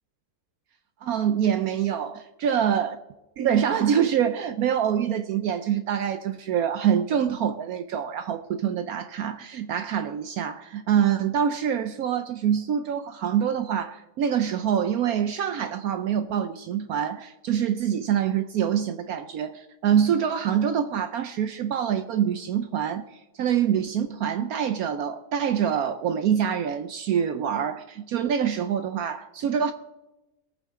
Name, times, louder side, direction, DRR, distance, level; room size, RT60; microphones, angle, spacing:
voice 1, 1.0-2.9 3.4-29.7, right 8 dB, 70° right, 1.1 m, -25 dB
22.0 x 9.0 x 3.6 m
omnidirectional pair, 1.7 m